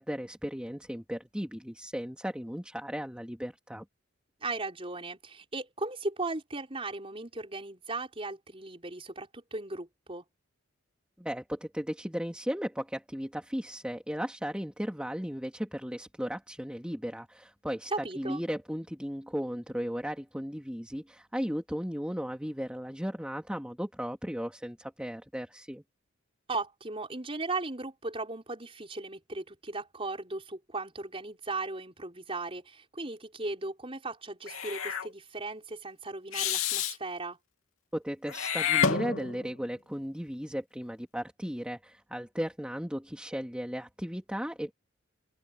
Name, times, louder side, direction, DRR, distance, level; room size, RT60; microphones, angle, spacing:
voice 1, 0.0-3.8 11.2-25.8 37.9-44.7, equal, 5° right, 2.6 m, -36 dB
voice 2, 4.4-10.2 17.9-18.4 26.5-37.4, right 3 dB, 25° right, 5.3 m, -37 dB
Meow / Hiss, 34.5-35.1 36.3-37.0 38.3-39.5, left 7 dB, 80° left, 3.1 m, -29 dB
open air
head